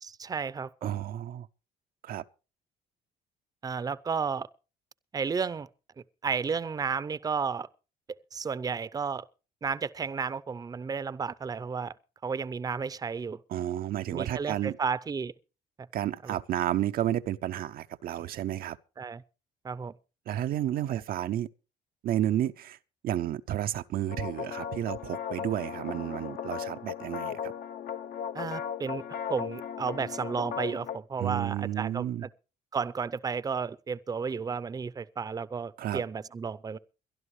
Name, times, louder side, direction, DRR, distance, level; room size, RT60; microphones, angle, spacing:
voice 1, 0.0-0.9 3.6-4.5 5.1-5.7 6.2-7.7 8.3-9.3 9.6-11.9 12.2-13.4 14.1-15.3 15.8-15.9 16.2-16.4 19.0-19.2 19.6-19.9 28.3-29.0 29.3-32.3 32.7-36.8, right 5 dB, 20° right, 0.6 m, -32 dB
voice 2, 0.8-1.5 2.0-2.2 13.5-14.8 15.9-18.8 20.3-21.5 22.0-22.8 23.0-27.5 31.2-32.2 35.8-36.0, right 12 dB, 60° right, 0.6 m, -31 dB
sound 1, 24.1-31.0, left 8 dB, 60° left, 0.9 m, -37 dB
22.5 x 12.0 x 3.2 m
cardioid pair, 110°, 17 cm